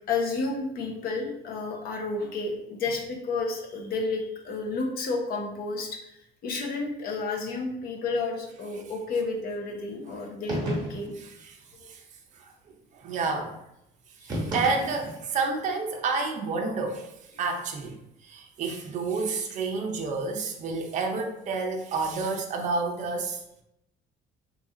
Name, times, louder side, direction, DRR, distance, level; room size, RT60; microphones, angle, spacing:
voice 1, 0.1-11.1, left 3 dB, 55° left, 1 dB, 0.7 m, -31 dB
sound 1, 10.5-11.2 14.3-15.3, equal, 25° right, 1.1 m, -32 dB
voice 2, 12.9-13.6 14.2-18.0 18.2-23.4, right 4 dB, 40° right, 2 dB, 0.5 m, -29 dB
3.1 x 2.7 x 3.6 m, 0.83 s
cardioid pair, 180°, 19 cm